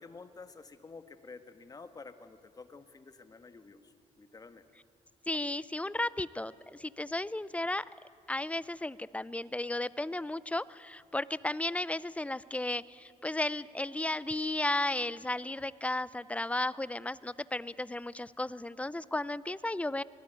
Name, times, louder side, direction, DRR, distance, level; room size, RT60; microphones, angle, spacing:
voice 1, 0.0-4.7, left 4 dB, 30° left, 10 dB, 1.5 m, -50 dB
voice 2, 5.3-7.8 8.3-20.0, left 2 dB, 10° left, 19 dB, 0.5 m, -34 dB
24.5 x 18.5 x 9.2 m, 2.2 s
cardioid pair, 100°, 13 cm